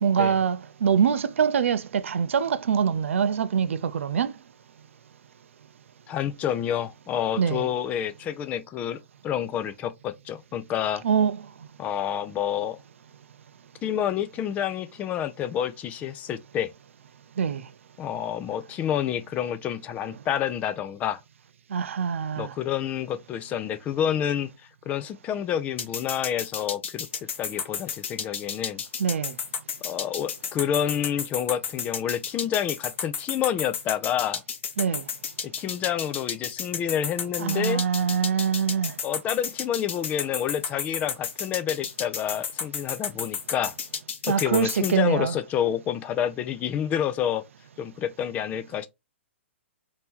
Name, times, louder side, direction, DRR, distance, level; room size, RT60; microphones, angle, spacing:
voice 1, 0.0-4.3 7.4-7.6 11.0-11.3 17.4-17.6 21.7-22.5 29.0-29.3 34.8-35.0 37.5-38.9 44.3-45.3, right 7 dB, 80° right, 0.5 m, -24 dB
voice 2, 6.1-9.0 9.2-11.0 11.8-12.8 13.8-16.7 18.0-21.2 22.4-24.5 24.9-27.1 27.4-28.8 29.8-34.4 35.4-37.8 39.0-43.8 44.3-47.4 47.8-48.9, left 9 dB, 20° left, 0.4 m, -28 dB
sound 1, 25.8-44.9, left 6 dB, 65° left, 1.0 m, -32 dB
2.9 x 2.8 x 3.6 m
hypercardioid pair, 135°, 7 cm